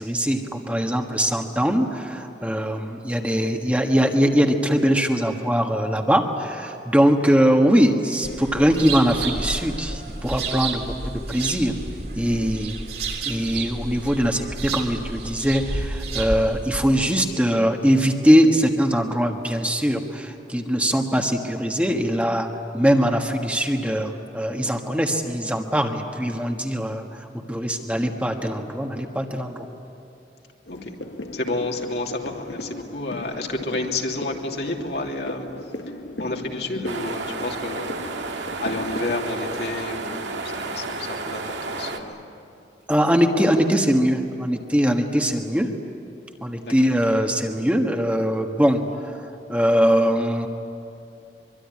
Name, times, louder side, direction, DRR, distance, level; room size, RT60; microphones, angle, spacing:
voice 1, 0.0-11.7 12.2-12.8 13.2-22.5 22.7-29.6 42.9-45.7 46.4-49.2 49.5-50.5, equal, 10° right, 2 dB, 1.4 m, -21 dB
sound 1, 8.2-17.2, right 3 dB, 60° right, 3.3 m, -31 dB
sound 2, 30.7-39.1, left 1 dB, 85° left, 1.4 m, -37 dB
voice 2, 31.3-35.5 36.2-42.2 46.6-46.9, left 2 dB, 65° left, 1 dB, 2.9 m, -30 dB
sound 3, 36.8-42.0, right 3 dB, 90° right, 2.2 m, -32 dB
24.0 x 24.0 x 9.8 m, 2.7 s
head